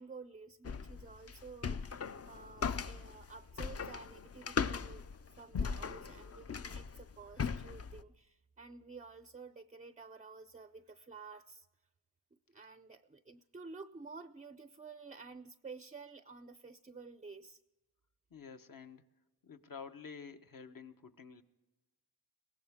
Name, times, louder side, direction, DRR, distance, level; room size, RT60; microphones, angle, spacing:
voice 1, 0.0-2.0 2.2-5.0 5.3-11.7 12.3-17.6, right 4 dB, 20° right, 12 dB, 0.4 m, -52 dB
sound 1, 0.6-8.0, left 6 dB, 40° left, 0.5 m, -39 dB
voice 2, 18.3-19.0 19.4-21.4, left 6 dB, 55° left, 8 dB, 1.0 m, -50 dB
22.0 x 17.0 x 3.6 m, 1.1 s
wide cardioid pair, 90°, 41 cm